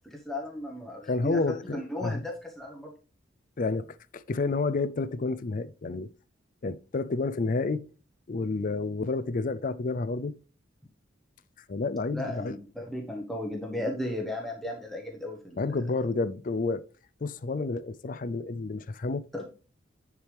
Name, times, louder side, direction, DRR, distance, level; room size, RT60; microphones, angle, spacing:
voice 1, 0.1-2.9 12.1-15.6 19.3-19.4, left 1 dB, ahead, 1.1 m, -35 dB
voice 2, 1.0-2.2 3.6-3.9 4.1-6.1 6.6-7.9 8.3-10.4 11.7-12.6 15.6-16.8 17.2-19.2, left 3 dB, 45° left, 0.4 m, -30 dB
10.5 x 4.8 x 3.4 m
head